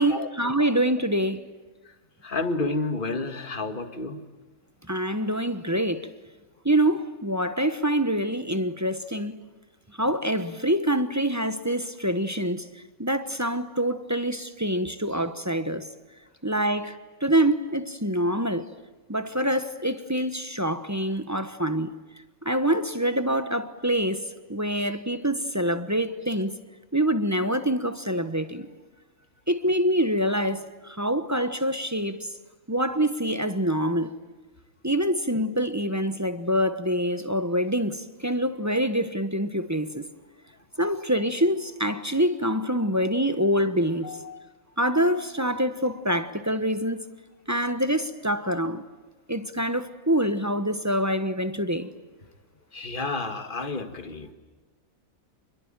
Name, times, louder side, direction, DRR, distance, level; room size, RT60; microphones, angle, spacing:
voice 1, 0.0-1.5 4.9-6.1 6.6-9.4 10.0-12.7 13.0-15.9 16.4-18.7 19.1-21.9 22.4-26.6 26.9-28.7 29.5-32.3 32.7-34.1 34.8-40.1 40.8-44.2 44.8-47.0 47.5-48.8 49.3-51.9, equal, 15° right, 1.1 m, -25 dB
voice 2, 2.2-4.2 44.0-44.4 52.7-54.3, left 3 dB, 40° left, 2.1 m, -30 dB
28.0 x 22.0 x 9.0 m
omnidirectional pair, 1.4 m